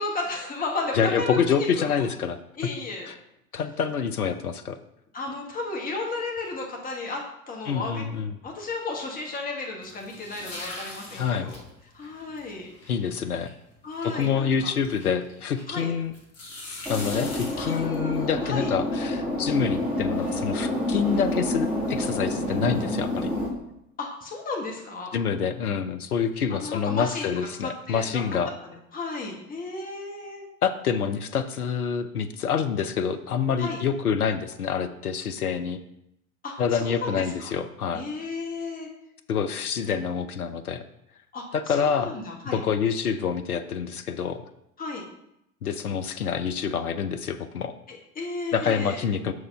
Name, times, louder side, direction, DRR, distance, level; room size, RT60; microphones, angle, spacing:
voice 1, 0.0-2.0 2.6-3.1 5.1-8.0 8.4-11.6 11.9-12.7 13.8-14.7 15.7-15.9 17.6-18.7 24.0-25.1 26.5-27.3 27.6-28.4 28.9-30.4 33.6-33.8 36.4-37.5 37.9-38.9 41.3-42.6 44.8-45.1 47.9-49.0, left 3 dB, 20° left, -1 dB, 1.5 m, -34 dB
voice 2, 0.9-2.4 3.1-3.2 3.5-4.8 7.7-8.3 11.1-11.5 12.9-13.5 14.0-16.1 16.9-23.3 25.1-28.5 30.6-35.8 36.6-38.0 39.3-40.8 41.5-42.1 42.5-44.4 45.6-47.7 48.5-49.3, left 7 dB, 85° left, 9 dB, 0.6 m, -27 dB
sound 1, 9.8-15.8 16.1-18.5, left 2 dB, 35° left, 2.5 m, -42 dB
sound 2, 16.9-23.5, left 1 dB, 5° right, 2.5 m, -28 dB
6.2 x 4.7 x 5.4 m, 0.81 s
figure-of-eight pair, 80°, 43 cm